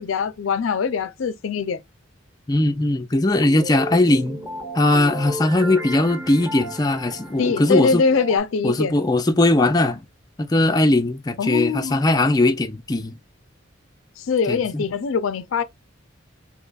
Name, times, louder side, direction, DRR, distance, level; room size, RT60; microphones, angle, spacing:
voice 1, 0.0-1.8 7.4-9.0 11.4-12.0 14.2-15.6, left 5 dB, 80° left, 0.4 m, -22 dB
voice 2, 2.5-4.4 4.7-8.0 8.6-10.0 10.4-13.2 14.5-14.8, left 2 dB, 20° left, 0.4 m, -19 dB
sound 1, 3.4-8.4, equal, 15° right, 1.1 m, -34 dB
2.9 x 2.3 x 3.9 m
head